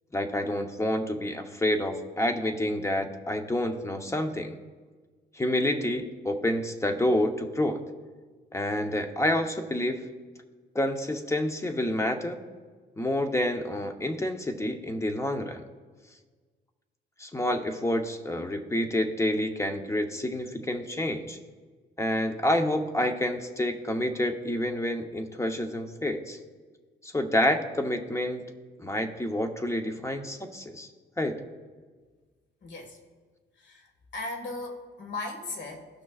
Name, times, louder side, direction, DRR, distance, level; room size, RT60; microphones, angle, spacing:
voice 1, 0.1-4.5 5.3-7.8 8.5-10.0 10.7-12.4 13.0-15.6 17.2-21.4 22.0-26.4 27.0-28.4 28.8-30.9 31.2-31.4, left 1 dB, 15° left, 5 dB, 0.9 m, -28 dB
voice 2, 32.6-33.0 33.6-35.9, left 2 dB, 65° left, 2 dB, 1.9 m, -37 dB
18.0 x 6.1 x 2.5 m, 1.4 s
cardioid pair, 90°, 20 cm